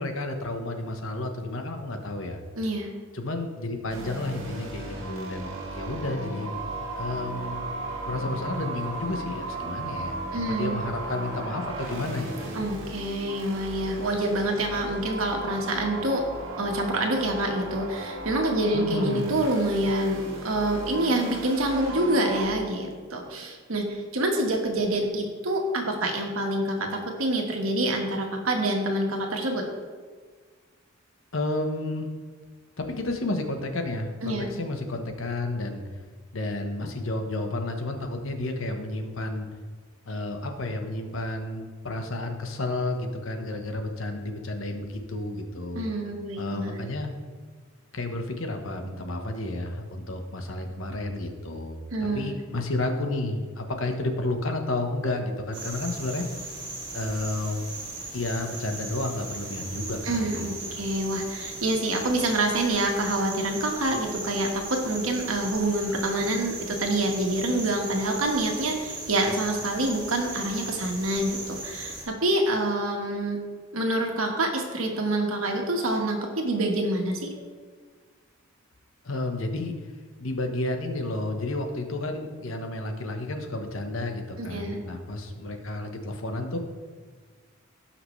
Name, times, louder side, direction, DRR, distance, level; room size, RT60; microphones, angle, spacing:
voice 1, 0.0-2.4 3.1-6.5 7.0-7.6 8.0-12.5 18.7-19.3 31.3-32.1 32.8-35.8 36.3-39.5 40.1-45.9 46.4-47.1 47.9-56.3 56.9-57.7 58.1-60.8 79.0-79.7 80.2-86.6, left 2 dB, 70° left, 5 dB, 1.2 m, -31 dB
voice 2, 2.6-2.9 10.3-10.8 12.5-16.2 16.6-29.6 34.2-34.5 45.7-46.8 51.9-52.3 60.0-73.4 73.7-77.3 84.4-84.8, right 1 dB, 85° right, 2 dB, 1.6 m, -27 dB
sound 1, 3.9-22.4, right 2 dB, 65° right, 1.9 m, -36 dB
sound 2, 55.5-72.0, right 2 dB, 25° right, 2.5 m, -38 dB
17.5 x 5.8 x 3.3 m, 1.6 s
head